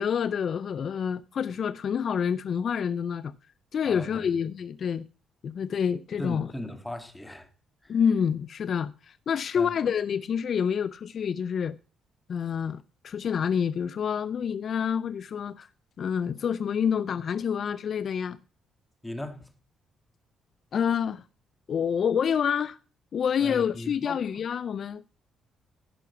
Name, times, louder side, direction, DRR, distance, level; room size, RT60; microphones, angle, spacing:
voice 1, 0.0-3.3 3.7-5.1 5.4-6.5 7.9-11.8 12.3-15.7 16.0-18.4 20.7-21.2 21.7-22.8 23.1-25.0, left 7 dB, 55° left, 0.5 m, -28 dB
voice 2, 3.8-4.3 6.2-7.5 7.8-8.0 9.6-9.7 19.0-19.5 23.4-24.2, left 1 dB, 10° left, 2.2 m, -38 dB
16.0 x 6.0 x 5.8 m
cardioid pair, 90°, 0 cm